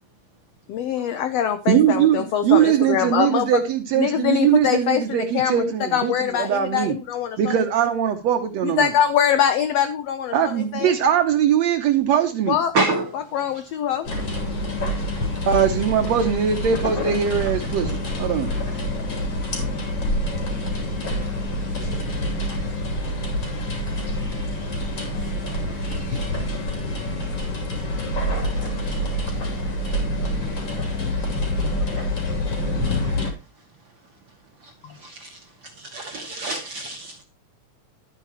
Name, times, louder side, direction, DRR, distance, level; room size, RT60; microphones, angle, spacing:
voice 1, 0.7-3.5 3.9-7.5 8.6-10.9 12.5-12.7 13.1-14.1 34.8-34.9, left 9 dB, 80° left, 1.4 m, -23 dB
voice 2, 1.7-7.0 7.4-8.9 10.3-12.6 15.5-18.5, right 9 dB, 70° right, 1.7 m, -21 dB
voice 3, 12.7-13.1 35.9-37.2, right 2 dB, 55° right, 1.4 m, -25 dB
sound 1, 14.0-33.3, left 1 dB, 45° left, 3.6 m, -26 dB
12.0 x 8.9 x 2.9 m
omnidirectional pair, 3.8 m